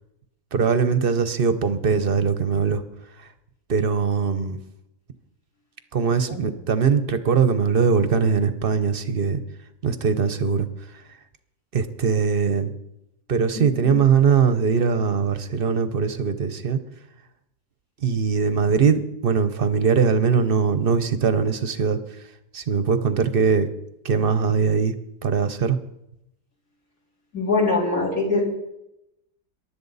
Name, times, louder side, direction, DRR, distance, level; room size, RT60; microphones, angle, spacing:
voice 1, 0.5-2.8 3.2-3.3 3.7-4.6 5.9-9.4 9.8-11.0 11.7-12.7 13.3-16.8 18.0-22.2 22.5-23.7 24.0-25.0 25.2-25.8, right 5 dB, 45° right, 11 dB, 0.9 m, -21 dB
voice 2, 13.5-14.0 27.3-28.6, left 3 dB, 55° left, -2 dB, 4.4 m, -23 dB
23.0 x 11.5 x 4.1 m, 0.85 s
omnidirectional pair, 1.8 m